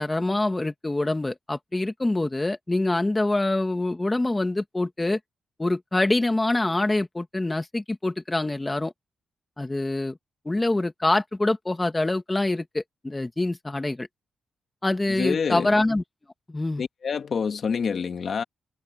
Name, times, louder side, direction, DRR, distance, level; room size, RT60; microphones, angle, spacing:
voice 1, 0.0-5.2 5.6-8.9 9.6-10.2 10.5-14.1 14.8-16.0 16.5-16.8, left 2 dB, 15° left, 1.8 m, -25 dB
voice 2, 15.1-15.7 16.8-18.4, left 6 dB, 45° left, 1.6 m, -27 dB
wide cardioid pair, 155°, 0 cm